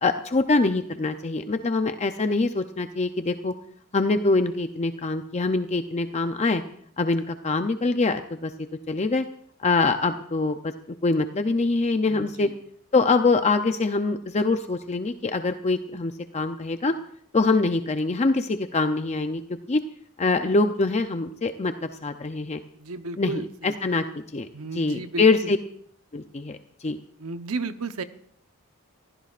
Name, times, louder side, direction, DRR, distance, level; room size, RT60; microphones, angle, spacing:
voice 1, 0.0-3.5 3.9-6.6 7.0-8.5 8.9-9.2 9.6-10.7 11.0-12.5 12.9-16.9 17.3-19.4 19.7-19.8 20.2-22.6 23.2-24.0 24.3-25.6 26.1-26.6 26.8-27.0, left 3 dB, 30° left, 8 dB, 0.6 m, -24 dB
voice 2, 12.1-12.5 22.7-23.7 24.5-25.5 27.2-28.0, right 3 dB, 85° right, 9 dB, 0.9 m, -34 dB
27.5 x 15.5 x 2.5 m, 0.64 s
head